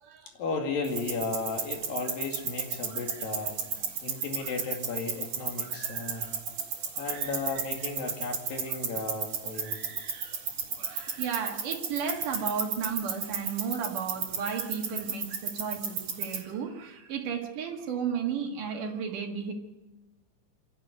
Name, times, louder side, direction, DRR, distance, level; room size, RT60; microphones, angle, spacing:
voice 1, 0.3-3.6 4.0-6.3 7.0-9.8, left 3 dB, 75° left, 3 dB, 4.0 m, -34 dB
sound 1, 0.8-16.4, right 6 dB, 50° right, 3.1 m, -34 dB
voice 2, 2.9-3.3 4.4-4.5 5.6-6.4 7.0-7.4 9.6-10.4 10.8-19.5, right 6 dB, 65° right, 3 dB, 3.3 m, -35 dB
27.0 x 11.0 x 9.5 m, 1.1 s
omnidirectional pair, 4.0 m